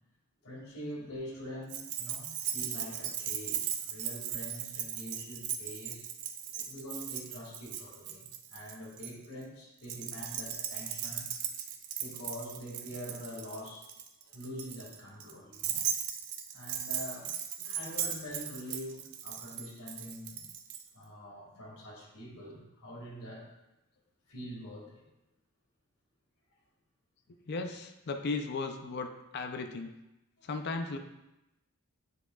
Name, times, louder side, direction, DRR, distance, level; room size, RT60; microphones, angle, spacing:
voice 1, 0.4-6.0 6.5-11.3 12.0-13.9 14.2-15.9 16.5-17.3 17.6-20.4 20.9-23.5 24.3-25.0 30.4-30.5, equal, 80° left, -3 dB, 1.9 m, -44 dB
Keys jangling, 1.7-9.1 9.8-20.8, right 9 dB, 90° right, 0.6 m, -38 dB
voice 2, 27.3-30.0 30.4-31.0, left 3 dB, 50° left, 6 dB, 0.5 m, -36 dB
8.9 x 4.8 x 2.3 m, 0.93 s
head